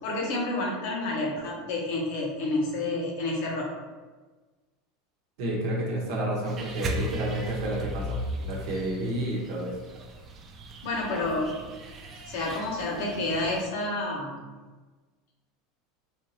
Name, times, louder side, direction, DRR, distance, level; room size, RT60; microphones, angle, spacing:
voice 1, 0.0-3.7 10.8-11.6 12.3-14.5, left 2 dB, 65° left, -2 dB, 0.9 m, -29 dB
voice 2, 5.4-9.8, right 1 dB, 65° right, -3 dB, 0.8 m, -30 dB
sound 1, 6.5-13.7, equal, 40° right, 0.5 m, -38 dB
3.5 x 2.8 x 2.7 m, 1.3 s
hypercardioid pair, 85°, 0 cm